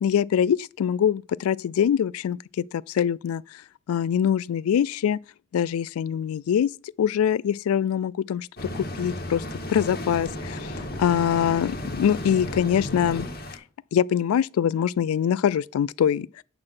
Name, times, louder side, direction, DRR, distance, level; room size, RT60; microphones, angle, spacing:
voice 1, 0.0-3.6 3.9-5.2 5.5-6.7 7.0-8.5 8.7-13.3 13.9-16.4, left 8 dB, 90° left, 0.3 m, -24 dB
sound 1, 8.6-13.6, left 1 dB, 45° left, 1.9 m, -34 dB
8.7 x 3.8 x 6.2 m
head